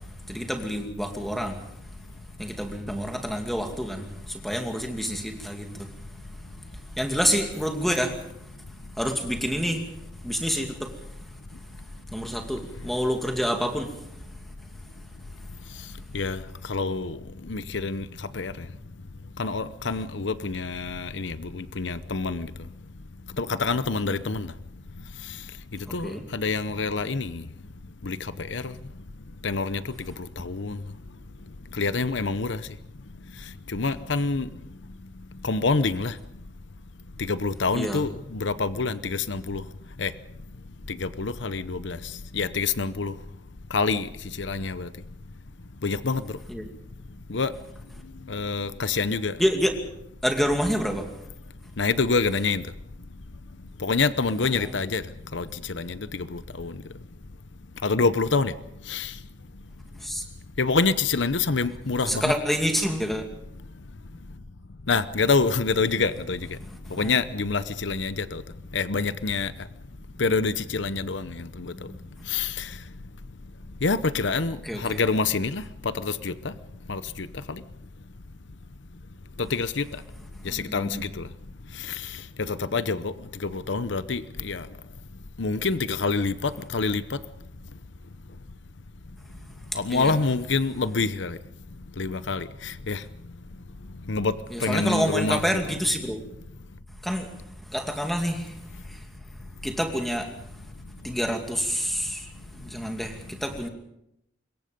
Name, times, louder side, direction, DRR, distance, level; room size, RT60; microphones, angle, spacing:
voice 1, 0.3-1.6 2.4-5.9 7.0-8.1 9.0-9.8 10.2-10.9 12.1-13.9 24.1-24.2 26.0-26.2 37.7-38.0 46.5-46.7 49.4-49.7 50.2-51.1 60.0-60.2 62.1-63.2 66.9-67.1 71.9-72.0 74.6-74.8 80.6-81.0 89.9-90.1 94.5-96.2 97.0-97.3 97.7-98.5 99.6-100.3 101.0-102.2 102.6-103.7, equal, ahead, 2.5 m, -27 dB
voice 2, 16.7-17.2 17.5-18.1 18.3-18.5 19.4-22.5 23.4-24.5 25.9-27.4 28.0-28.7 29.4-29.8 30.4-30.8 31.8-32.6 33.7-34.5 35.4-36.1 37.3-39.6 40.0-40.1 40.9-42.0 42.3-43.1 43.7-44.1 44.4-44.9 45.8-46.2 47.3-47.5 48.3-49.4 51.8-52.6 53.8-55.0 55.3-56.7 57.8-58.5 58.9-59.1 60.6-62.3 64.9-66.6 66.9-68.4 68.7-69.5 70.2-71.7 72.3-72.7 73.8-76.5 76.9-77.6 79.4-79.8 80.4-81.3 81.8-82.1 82.4-83.1 83.4-84.7 85.4-87.2 89.7-91.4 92.0-93.0 94.1-94.3 94.6-95.7, left 4 dB, 75° left, 0.8 m, -26 dB
25.5 x 22.0 x 5.3 m
head